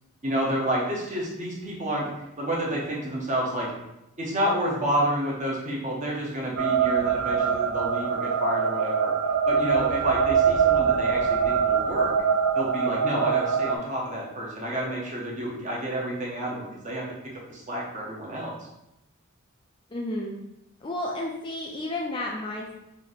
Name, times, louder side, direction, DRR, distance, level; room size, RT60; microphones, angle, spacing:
voice 1, 0.2-3.7 4.2-9.1 9.5-12.1 12.5-17.0 17.5-18.7, equal, 35° right, -3 dB, 0.9 m, -29 dB
sound 1, 6.6-13.8, right 6 dB, 70° right, 0.4 m, -23 dB
voice 2, 19.9-20.4 20.8-22.7, left 1 dB, 25° left, 0 dB, 0.3 m, -32 dB
3.4 x 2.7 x 3.9 m, 0.88 s
head